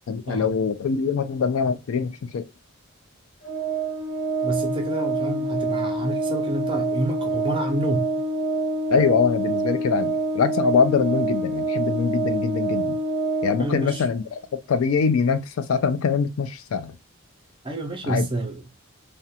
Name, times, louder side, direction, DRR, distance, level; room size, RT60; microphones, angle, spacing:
voice 1, 0.1-2.5 8.9-13.0 13.4-14.4 14.7-17.0 18.0-18.3, left 5 dB, 70° left, 0.3 m, -23 dB
Organ, 3.4-14.1, right 2 dB, 50° left, 0.9 m, -26 dB
voice 2, 4.4-8.2 13.6-14.0 17.6-18.7, right 1 dB, 25° right, 0.5 m, -28 dB
2.4 x 2.1 x 2.7 m
head